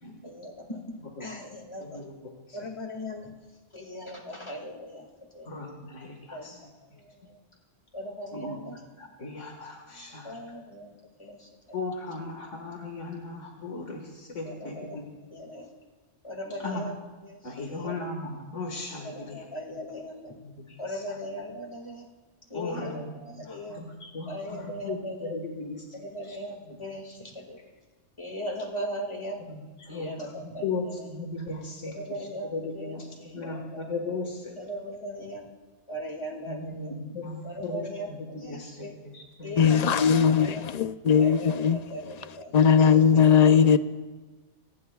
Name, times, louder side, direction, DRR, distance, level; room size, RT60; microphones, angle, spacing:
voice 1, 0.2-2.0 2.5-3.3 3.7-5.1 5.3-5.5 6.3-6.5 7.0-7.4 7.9-8.8 9.9-10.9 11.2-11.5 14.4-15.0 15.3-15.7 16.2-16.9 17.2-18.1 18.9-20.3 20.8-22.1 22.5-23.8 24.3-25.4 25.9-27.6 28.2-29.4 29.9-31.1 31.9-33.8 34.6-35.5 35.9-37.0 37.4-38.9 39.4-40.7 41.2-43.6, equal, 25° left, 2.2 m, -39 dB
voice 2, 1.8-2.7 5.5-6.6 8.3-10.4 11.7-15.0 16.6-16.8 17.4-19.4 20.4-21.0 22.5-23.1 23.5-25.8 26.3-26.4 26.7-26.8 29.5-30.1 30.4-31.9 32.5-33.0 33.3-34.5 36.5-38.9 39.1-39.8 42.5-42.9 43.4-43.6, left 3 dB, 80° left, 2.1 m, -37 dB
voice 3, 39.6-41.8 42.5-43.8, left 7 dB, 45° left, 0.6 m, -19 dB
26.0 x 18.5 x 2.4 m
omnidirectional pair, 1.2 m